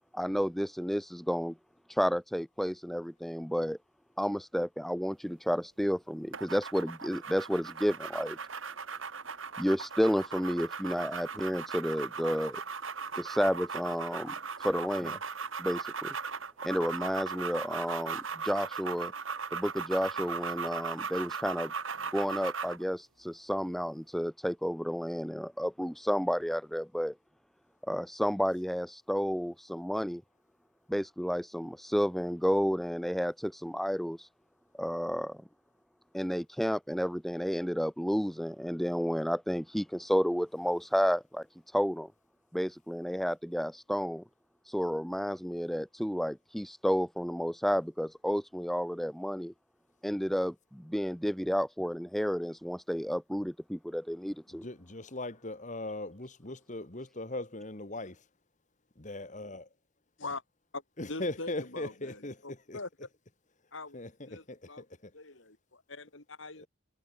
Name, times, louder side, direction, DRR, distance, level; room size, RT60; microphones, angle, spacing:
voice 1, 0.1-1.5 1.9-3.8 4.2-8.4 9.6-12.6 13.2-15.2 15.6-16.2 16.6-19.1 19.5-21.7 22.1-27.1 27.9-30.2 30.9-34.3 34.7-35.4 36.1-41.5 41.7-42.1 42.5-44.2 44.7-49.5 50.0-54.7, equal, ahead, 0.8 m, -31 dB
sound 1, 6.3-22.8, right 5 dB, 80° right, 2.5 m, -38 dB
voice 2, 54.5-58.3 59.0-59.7 61.0-62.8 63.9-65.1 66.5-66.7, left 2 dB, 40° left, 2.0 m, -40 dB
voice 3, 61.1-62.9 63.7-64.8 65.1-66.7, left 3 dB, 70° left, 3.6 m, -43 dB
head